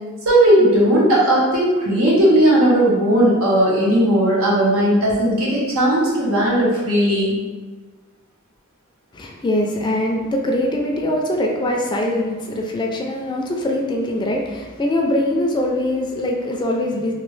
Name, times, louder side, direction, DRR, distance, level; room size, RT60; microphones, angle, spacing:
voice 1, 0.2-7.4, right 1 dB, 85° right, -5 dB, 1.1 m, -16 dB
voice 2, 9.1-17.1, left 1 dB, 20° left, 0 dB, 0.4 m, -22 dB
3.1 x 2.6 x 3.1 m, 1.3 s
head